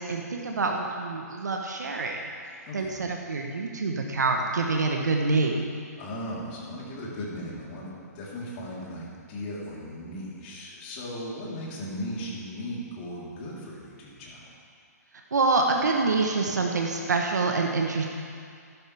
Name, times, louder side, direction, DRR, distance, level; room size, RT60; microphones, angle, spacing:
voice 1, 0.0-2.2 2.7-5.6 15.3-18.1, right 3 dB, 85° right, 2 dB, 1.1 m, -26 dB
voice 2, 2.7-3.1 6.0-14.5, equal, 40° left, -5 dB, 3.6 m, -37 dB
14.5 x 12.0 x 3.5 m, 2.3 s
hypercardioid pair, 135°, 9 cm